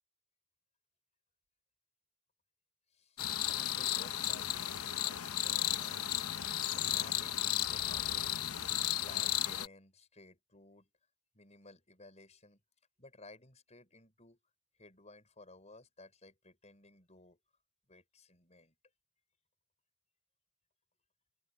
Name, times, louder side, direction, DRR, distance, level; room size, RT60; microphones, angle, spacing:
voice 1, 2.9-8.6 8.9-10.9 11.3-12.6 13.0-14.4 14.8-17.4 17.9-18.8, left 2 dB, 30° left, 5.8 m, -57 dB
sound 1, 3.2-9.7, left 12 dB, 85° left, 1.0 m, -34 dB
head